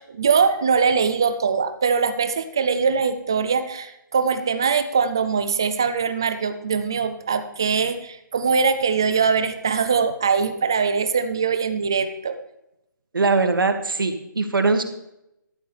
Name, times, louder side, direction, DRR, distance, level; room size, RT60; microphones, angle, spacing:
voice 1, 0.0-12.4, right 5 dB, 10° right, 10 dB, 0.4 m, -22 dB
voice 2, 13.1-14.8, right 3 dB, 85° right, 6 dB, 2.0 m, -21 dB
13.0 x 12.0 x 3.3 m, 0.84 s
hypercardioid pair, 175°, 11 cm